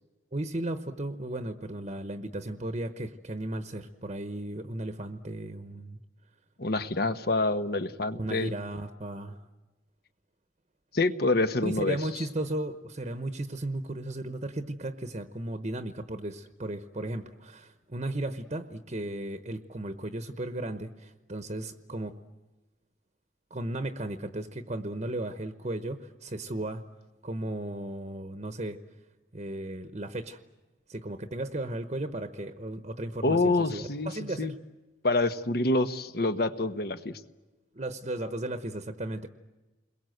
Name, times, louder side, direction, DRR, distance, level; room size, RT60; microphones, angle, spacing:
voice 1, 0.3-6.0 8.1-9.4 11.6-22.2 23.5-26.8 27.2-28.8 29.3-30.4 30.9-34.5 37.7-39.3, right 1 dB, 35° right, 9 dB, 1.0 m, -35 dB
voice 2, 6.6-8.5 10.9-12.0 33.2-34.1 34.4-34.5 35.0-37.2, left 2 dB, 60° left, 10 dB, 1.3 m, -27 dB
29.5 x 22.0 x 8.0 m, 1.1 s
head